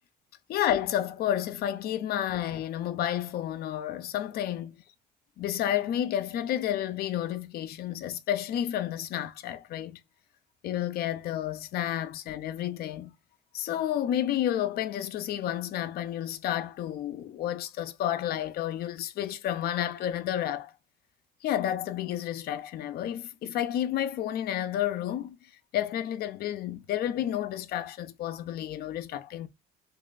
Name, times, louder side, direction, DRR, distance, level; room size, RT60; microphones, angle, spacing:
voice 1, 0.5-4.8 5.4-10.0 10.6-13.1 13.5-20.7 21.4-25.4 25.7-29.5, left 11 dB, 65° left, 0.6 m, -31 dB
3.2 x 2.7 x 3.8 m
cardioid pair, 110°, 17 cm